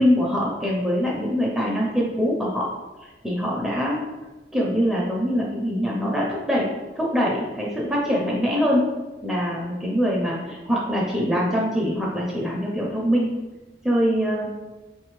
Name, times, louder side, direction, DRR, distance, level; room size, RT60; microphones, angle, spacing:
voice 1, 0.0-2.7 3.2-4.0 4.5-6.7 7.0-8.9 9.2-13.3 13.8-14.5, equal, ahead, -4 dB, 0.5 m, -23 dB
3.9 x 3.3 x 3.1 m, 1.2 s
head